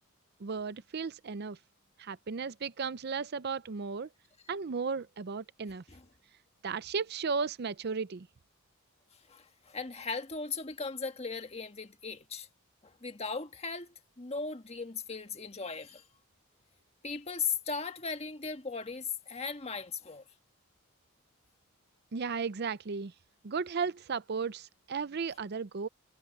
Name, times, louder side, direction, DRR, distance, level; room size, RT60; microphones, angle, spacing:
voice 1, 0.4-1.6 2.0-4.1 4.5-5.8 6.6-8.3 22.1-23.1 23.4-25.9, right 5 dB, 50° right, 0.5 m, -35 dB
voice 2, 9.3-12.5 12.8-16.1 17.0-20.2, left 5 dB, 30° left, 1.5 m, -38 dB
head